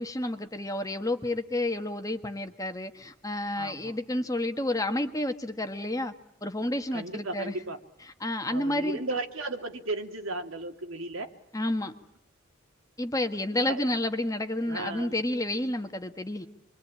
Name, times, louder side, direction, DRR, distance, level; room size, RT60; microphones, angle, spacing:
voice 1, 0.0-6.1 6.4-7.5 8.2-9.0 11.5-11.9 13.0-16.5, left 1 dB, 15° left, 7 dB, 1.5 m, -30 dB
voice 2, 3.5-4.0 6.9-7.8 8.5-11.3 13.6-13.8 14.7-15.2, right 2 dB, 75° right, 5 dB, 2.7 m, -35 dB
27.5 x 23.5 x 8.9 m, 0.73 s
head